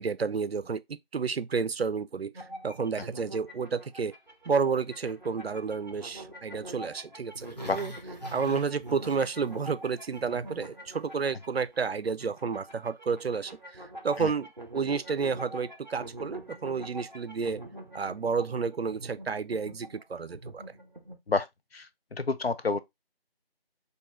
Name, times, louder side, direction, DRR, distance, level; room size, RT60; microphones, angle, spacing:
voice 1, 0.0-4.1 4.5-7.9 8.3-14.5 14.7-17.6 17.9-20.6, right 5 dB, 80° right, 0.5 m, -31 dB
sound 1, 2.3-21.2, right 1 dB, 50° right, 0.7 m, -45 dB
Growling, 7.3-9.6 9.9-10.3 10.6-10.7, equal, 45° left, 0.7 m, -44 dB
voice 2, 21.7-22.8, left 4 dB, 80° left, 0.6 m, -29 dB
4.4 x 2.7 x 3.0 m
figure-of-eight pair, 180°, 30 cm